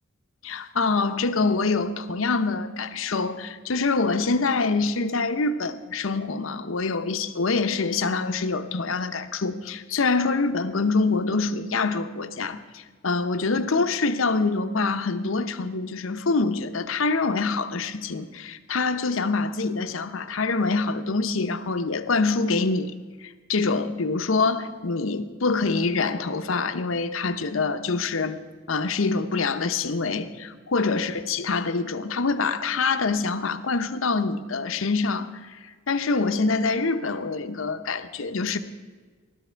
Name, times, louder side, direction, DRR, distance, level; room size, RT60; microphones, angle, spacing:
voice 1, 0.4-22.9 23.5-28.4 28.7-35.3 35.9-38.6, left 4 dB, 85° left, 9 dB, 0.8 m, -25 dB
15.5 x 12.5 x 4.5 m, 1.5 s
head